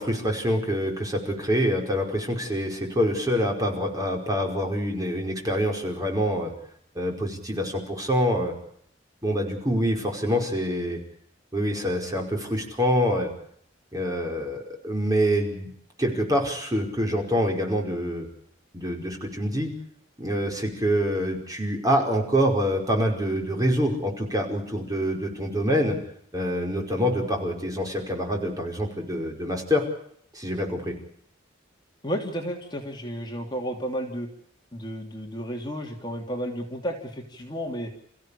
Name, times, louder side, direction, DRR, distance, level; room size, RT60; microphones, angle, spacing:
voice 1, 0.0-6.5 6.9-8.5 9.2-11.0 11.5-13.3 13.9-15.7 16.0-18.3 18.7-19.7 20.2-26.0 26.3-29.8 30.3-30.9, equal, 20° right, 1 dB, 5.1 m, -26 dB
voice 2, 32.0-34.3 34.7-37.9, equal, 25° left, 1 dB, 3.1 m, -32 dB
29.0 x 16.0 x 8.6 m, 0.68 s
head